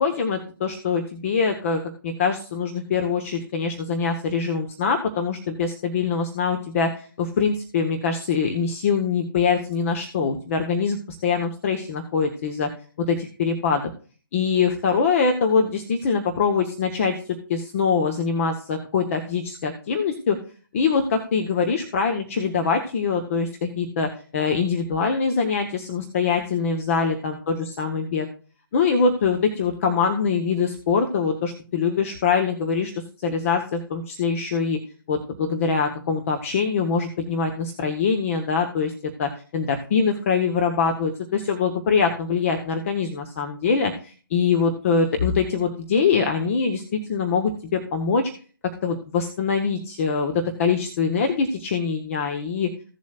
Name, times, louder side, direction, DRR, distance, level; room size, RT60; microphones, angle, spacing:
voice 1, 0.0-12.7 13.0-13.8 14.3-17.1 17.5-20.4 20.7-28.3 28.7-32.9 33.2-34.8 35.1-48.2 48.8-52.7, left 5 dB, 35° left, 4 dB, 1.1 m, -23 dB
15.5 x 7.3 x 2.4 m, 0.39 s
figure-of-eight pair, 140°, 12 cm